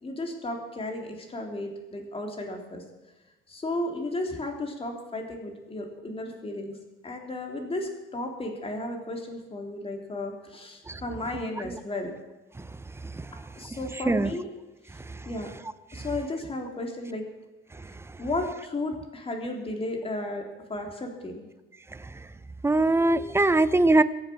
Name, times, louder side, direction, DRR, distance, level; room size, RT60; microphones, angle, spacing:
voice 1, 0.0-2.8 3.5-6.7 7.0-12.1 13.6-14.5 15.2-15.5 15.9-17.2 18.2-21.4, left 2 dB, 25° left, 2 dB, 3.1 m, -34 dB
voice 2, 22.6-24.0, right 2 dB, 10° right, 14 dB, 0.6 m, -21 dB
22.5 x 8.0 x 6.1 m, 1.1 s
cardioid pair, 135°, 21 cm